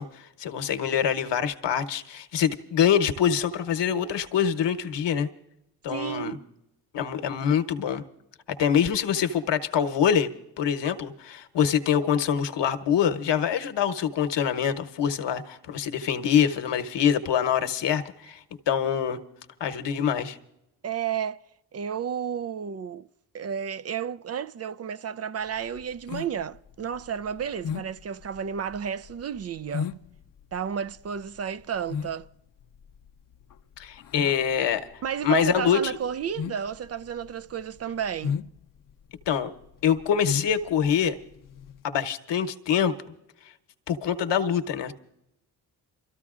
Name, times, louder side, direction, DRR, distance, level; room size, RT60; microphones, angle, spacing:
voice 1, 0.0-5.3 5.8-6.4 6.9-8.0 8.6-10.3 10.6-19.2 19.6-20.4 33.8-34.9 35.2-36.0 39.3-39.5 39.8-41.2 41.8-43.1 43.9-44.9, left 8 dB, 65° left, 1.1 m, -25 dB
voice 2, 5.9-6.4 20.8-21.4 21.7-23.1 23.3-29.9 30.5-32.3 35.0-38.4, right 8 dB, 35° right, 0.4 m, -32 dB
sound 1, 25.5-41.8, left 7 dB, 45° left, 0.7 m, -36 dB
29.0 x 14.0 x 2.5 m
hypercardioid pair, 40°, 46 cm